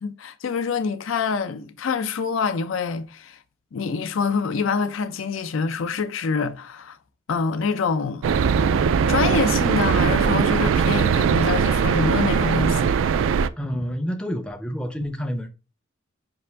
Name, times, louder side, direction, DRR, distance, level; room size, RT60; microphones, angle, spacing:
voice 1, 0.0-3.4 3.7-7.0 7.3-8.3 9.1-12.9, left 5 dB, 85° left, 0.5 m, -26 dB
sound 1, 8.2-13.5, right 6 dB, 80° right, 0.3 m, -20 dB
voice 2, 13.6-15.5, equal, 5° left, 0.4 m, -28 dB
5.5 x 2.5 x 3.3 m
head